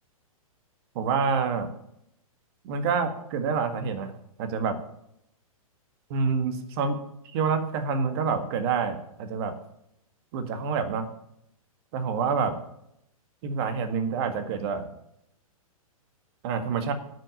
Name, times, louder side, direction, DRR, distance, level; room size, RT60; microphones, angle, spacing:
voice 1, 1.0-1.7 2.6-4.1 4.4-4.8 6.1-7.0 7.3-9.5 10.3-11.1 11.9-12.5 13.4-14.9 16.4-16.9, right 5 dB, 45° right, 8 dB, 1.8 m, -27 dB
9.6 x 6.6 x 8.9 m, 0.76 s
figure-of-eight pair, 120°, 19 cm